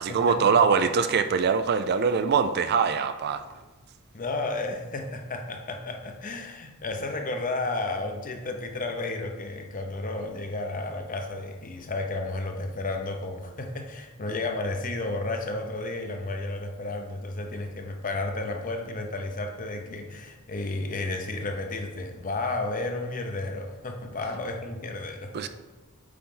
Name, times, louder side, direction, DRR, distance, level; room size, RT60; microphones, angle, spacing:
voice 1, 0.0-3.4 25.3-25.5, right 5 dB, 45° right, 10 dB, 0.4 m, -23 dB
voice 2, 4.1-25.5, left 2 dB, 40° left, 5 dB, 0.7 m, -32 dB
8.5 x 4.1 x 3.8 m, 1.2 s
head